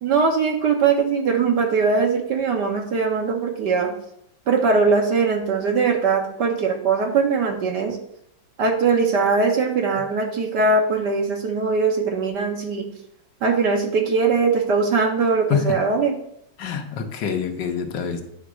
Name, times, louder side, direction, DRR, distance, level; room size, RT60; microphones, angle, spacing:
voice 1, 0.0-3.9 4.5-8.0 8.6-12.9 13.4-16.1, right 4 dB, 60° right, 1.7 m, -21 dB
voice 2, 15.5-15.8 16.6-18.2, left 7 dB, 70° left, 1.4 m, -26 dB
9.3 x 3.6 x 6.2 m
omnidirectional pair, 2.2 m